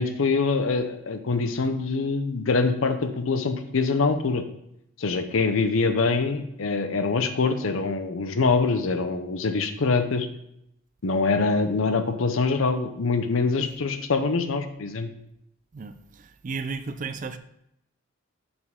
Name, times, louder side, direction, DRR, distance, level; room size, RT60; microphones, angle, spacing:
voice 1, 0.0-4.4 5.0-10.3 11.0-15.1, left 4 dB, 75° left, 0.6 m, -24 dB
voice 2, 15.7-17.4, right 4 dB, 40° right, 0.4 m, -34 dB
6.9 x 4.3 x 3.6 m
head